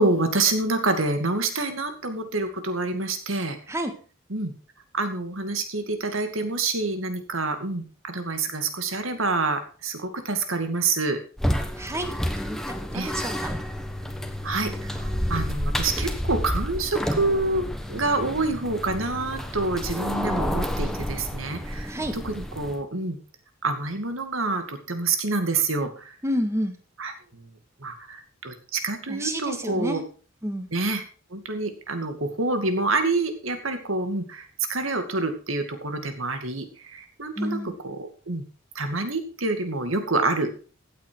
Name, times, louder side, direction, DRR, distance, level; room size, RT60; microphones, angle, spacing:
voice 1, 0.0-3.6 4.3-4.5 4.9-11.2 12.9-13.1 14.4-23.2 23.6-26.2 27.0-27.5 27.8-30.0 30.7-31.0 31.3-38.4 38.7-40.5, right 3 dB, 75° right, 7 dB, 2.4 m, -27 dB
sound 1, 11.4-22.8, equal, ahead, 1.2 m, -30 dB
voice 2, 11.8-12.6 12.9-13.3 21.9-22.1 26.2-26.7 29.1-30.0 30.4-30.7 37.4-37.7, equal, 15° right, 6 dB, 1.8 m, -29 dB
15.5 x 8.8 x 4.8 m, 0.38 s
head